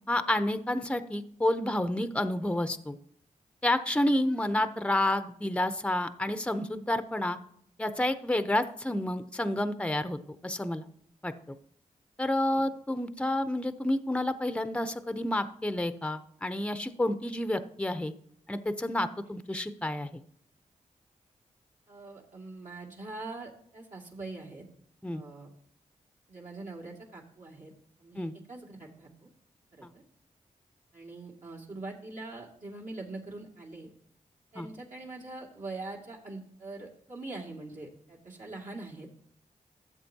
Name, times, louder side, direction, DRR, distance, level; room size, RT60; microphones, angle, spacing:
voice 1, 0.1-3.0 3.6-7.4 7.8-10.2 10.4-10.8 11.2-11.3 12.2-18.1 18.5-20.2 25.0-25.2 28.2-28.3 34.6-34.7, left 1 dB, 10° left, 11 dB, 0.7 m, -29 dB
voice 2, 21.9-24.6 25.1-25.5 26.3-27.7 28.0-29.3 29.7-30.0 30.9-33.9 34.5-39.1, right 2 dB, 65° right, -3 dB, 2.2 m, -43 dB
13.5 x 7.3 x 2.8 m, 0.67 s
cardioid pair, 45°, 14 cm